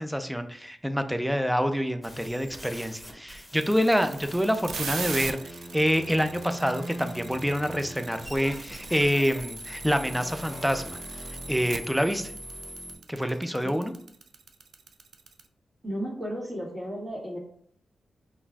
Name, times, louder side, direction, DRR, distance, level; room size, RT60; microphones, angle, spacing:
voice 1, 0.0-11.0 11.5-12.3 13.1-13.9, equal, ahead, 8 dB, 0.4 m, -27 dB
sound 1, 2.0-13.0, right 1 dB, 15° left, 0.9 m, -42 dB
sound 2, 3.6-15.4, right 5 dB, 75° right, 0.3 m, -39 dB
voice 2, 15.8-17.4, equal, 30° right, -7 dB, 1.5 m, -34 dB
5.3 x 2.5 x 2.3 m, 0.64 s
cardioid pair, 60°, 0 cm